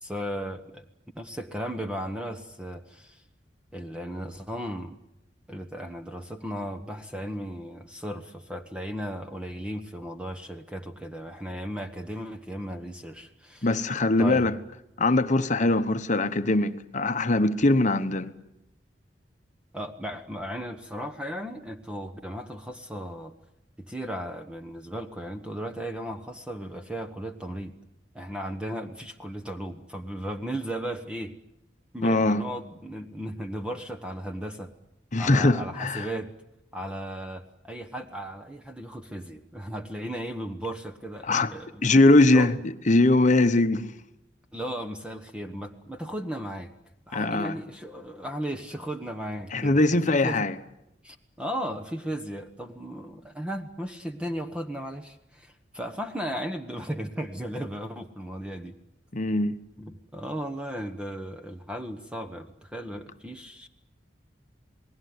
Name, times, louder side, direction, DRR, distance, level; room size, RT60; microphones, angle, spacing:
voice 1, 0.0-0.8 1.1-3.2 3.7-5.0 5.5-13.8 14.2-14.5 19.7-23.3 23.9-27.7 28.1-31.3 31.9-34.7 35.2-36.3 36.7-41.9 42.3-42.5 44.5-46.7 47.1-50.5 51.0-58.8 59.8-63.7, equal, 5° right, 1.2 m, -36 dB
voice 2, 13.6-14.6 15.0-18.3 32.0-32.4 35.1-36.1 41.2-41.5 41.8-44.0 47.1-47.6 49.5-50.6 59.1-59.6, left 2 dB, 45° left, 1.0 m, -22 dB
28.5 x 19.5 x 9.6 m
head